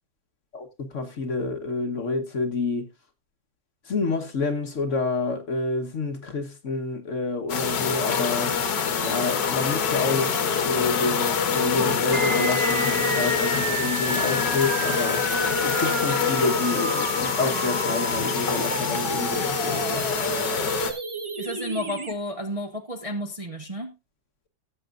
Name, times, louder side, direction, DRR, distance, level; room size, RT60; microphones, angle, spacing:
voice 1, 0.5-2.9 3.8-8.6 9.0-15.3 15.6-20.1, left 3 dB, 45° left, 1.3 m, -28 dB
sound 1, 7.5-20.9, left 6 dB, 70° left, 1.8 m, -25 dB
sound 2, 12.1-22.1, right 3 dB, 40° right, 0.4 m, -31 dB
voice 2, 21.4-23.9, left 1 dB, 25° right, 0.8 m, -32 dB
17.0 x 7.7 x 2.5 m
omnidirectional pair, 2.0 m